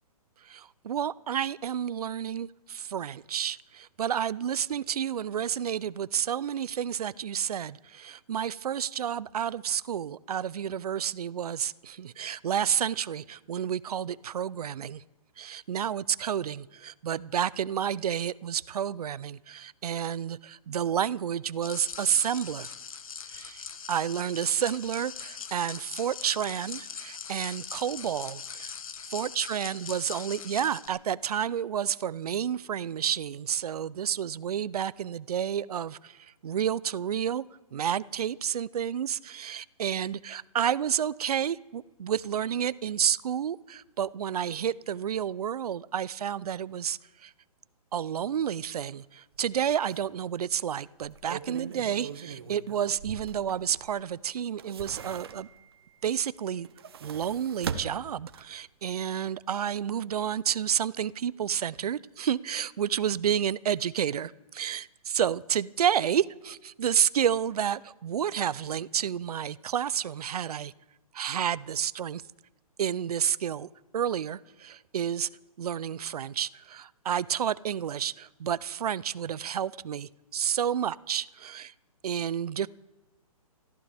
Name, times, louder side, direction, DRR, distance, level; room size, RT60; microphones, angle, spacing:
voice 1, 0.4-15.0 15.4-22.7 23.3-28.7 29.1-37.4 37.7-47.3 47.9-55.5 56.0-56.7 57.0-70.7 71.1-72.2 72.8-73.7 73.9-75.3 75.6-81.7 82.0-82.7, right 9 dB, 75° right, 20 dB, 0.5 m, -30 dB
sound 1, 21.6-30.9, left 6 dB, 60° left, 1.2 m, -41 dB
sound 2, 49.4-49.5 49.9-50.0 50.9-54.0 54.4-55.7 56.5-58.7 59.0-59.1, right 6 dB, 40° right, 0.9 m, -40 dB
25.0 x 14.0 x 3.4 m, 1.1 s
hypercardioid pair, 175°, 20 cm